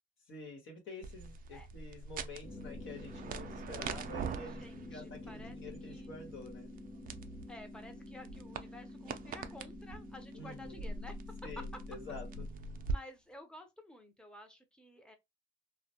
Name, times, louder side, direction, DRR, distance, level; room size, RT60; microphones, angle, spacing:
voice 1, 0.3-6.7 10.3-10.9 11.4-12.5, left 3 dB, 75° left, 1.1 m, -48 dB
sound 1, 1.0-12.9, right 4 dB, 45° right, 0.4 m, -44 dB
sound 2, 2.4-10.6, left 3 dB, 55° left, 0.7 m, -54 dB
sound 3, 2.5-12.5, left 1 dB, 25° left, 0.8 m, -51 dB
voice 2, 4.5-5.6 5.8-6.2 7.5-11.2 12.9-15.2, left 1 dB, 5° left, 0.6 m, -52 dB
2.2 x 2.1 x 2.8 m
cardioid pair, 90°, 20 cm